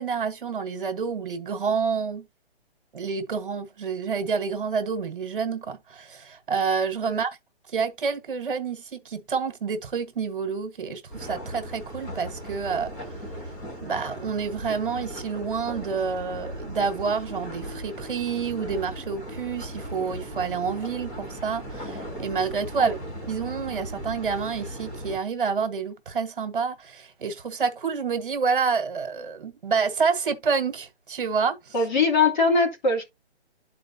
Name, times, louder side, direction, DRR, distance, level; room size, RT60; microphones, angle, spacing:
voice 1, 0.0-2.3 2.9-7.4 7.7-12.9 13.8-23.0 23.3-31.7, right 5 dB, 50° right, 1.4 m, -28 dB
sound 1, 11.1-25.2, equal, 15° left, 1.2 m, -37 dB
voice 2, 31.7-33.0, left 3 dB, 45° left, 2.5 m, -22 dB
12.5 x 4.3 x 2.7 m
hypercardioid pair, 170°, 33 cm